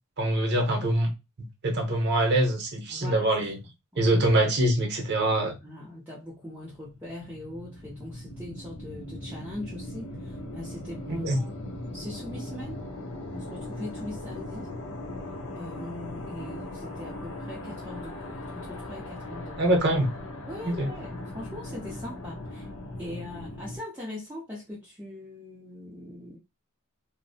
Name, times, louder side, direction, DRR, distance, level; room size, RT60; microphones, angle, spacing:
voice 1, 0.2-1.1 1.6-3.6 4.0-5.6 11.1-11.4 19.6-20.1 20.6-20.9, right 1 dB, 50° right, 0.8 m, -24 dB
voice 2, 2.9-3.3 3.9-4.2 5.6-12.8 13.3-14.7 15.6-19.7 20.5-22.7 23.0-26.4, left 1 dB, 10° right, 0.5 m, -41 dB
sound 1, 6.7-23.8, left 1 dB, 70° left, 0.6 m, -39 dB
2.6 x 2.0 x 2.6 m
head